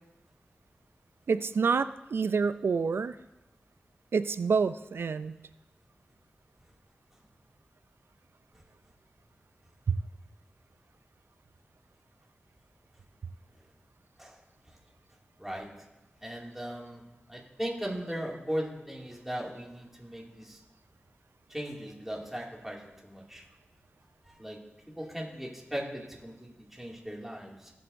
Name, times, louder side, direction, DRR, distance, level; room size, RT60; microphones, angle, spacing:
voice 1, 1.3-3.2 4.1-5.4 9.9-10.0, right 5 dB, 85° right, 13 dB, 0.4 m, -27 dB
voice 2, 16.2-17.0 17.3-20.6 21.5-23.4 24.4-24.6 25.0-27.7, equal, 5° right, -2 dB, 2.3 m, -38 dB
17.0 x 7.7 x 2.6 m, 0.97 s
wide cardioid pair, 60°, 4 cm